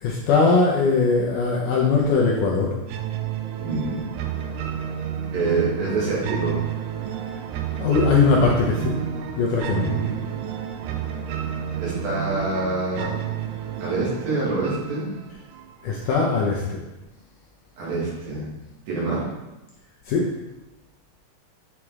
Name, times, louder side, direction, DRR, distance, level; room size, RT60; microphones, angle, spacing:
voice 1, 0.0-2.7 7.8-8.9 9.4-9.9 15.8-16.8 20.1-20.3, left 4 dB, 75° left, -2 dB, 2.0 m, -20 dB
sound 1, 2.9-15.9, right 8 dB, 90° right, 2.6 m, -30 dB
voice 2, 3.6-4.1 5.3-6.6 9.7-10.3 11.8-13.1 13.8-15.1 17.8-18.5 18.9-19.3, right 3 dB, 70° right, -6 dB, 3.8 m, -26 dB
8.6 x 4.7 x 3.6 m, 1.0 s
omnidirectional pair, 4.4 m